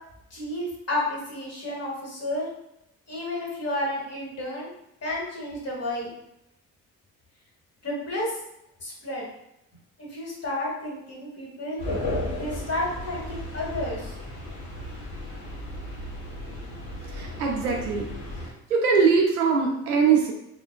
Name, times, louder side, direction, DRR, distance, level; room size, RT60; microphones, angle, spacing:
voice 1, 0.3-2.5 3.1-4.7 5.0-6.1 7.8-8.4 8.8-9.2 10.0-11.8 12.3-14.1, left 1 dB, 35° left, -3 dB, 1.3 m, -31 dB
sound 1, 11.8-18.5, left 1 dB, 60° left, 1.0 m, -34 dB
voice 2, 17.1-18.1 18.7-20.3, right 5 dB, 85° right, 0 dB, 0.6 m, -22 dB
3.8 x 2.3 x 2.3 m, 0.83 s
figure-of-eight pair, 40°, 43 cm